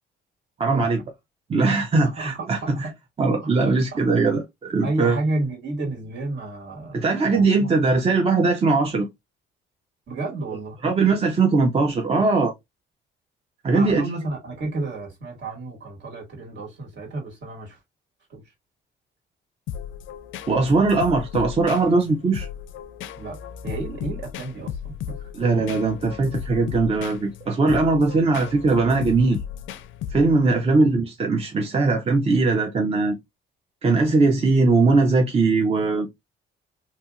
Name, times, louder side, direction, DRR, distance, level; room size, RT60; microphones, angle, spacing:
voice 1, 0.6-1.0 1.5-2.9 3.2-5.2 6.9-9.1 10.8-12.5 13.6-14.1 20.5-22.5 25.3-29.4 30.1-33.2 33.8-36.1, right 3 dB, 30° right, 0.6 m, -20 dB
voice 2, 2.0-2.9 3.4-4.1 4.8-7.8 10.1-10.8 13.7-17.8 18.3-18.4 23.2-25.3 30.5-30.8, right 2 dB, 65° right, 1.8 m, -32 dB
sound 1, 19.7-30.5, left 9 dB, 75° left, 0.4 m, -35 dB
2.8 x 2.7 x 2.3 m
cardioid pair, 90°, 20 cm